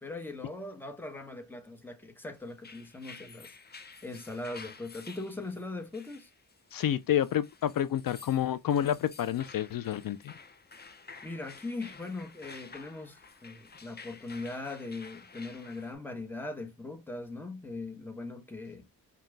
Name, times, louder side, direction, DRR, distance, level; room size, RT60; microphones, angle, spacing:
voice 1, 0.0-3.5 4.0-6.3 11.2-18.9, left 2 dB, 5° left, 1.1 m, -40 dB
sound 1, 2.5-15.9, left 4 dB, 25° left, 0.7 m, -51 dB
voice 2, 6.7-10.3, left 10 dB, 70° left, 0.5 m, -29 dB
5.7 x 2.3 x 3.2 m
wide cardioid pair, 95°, 36 cm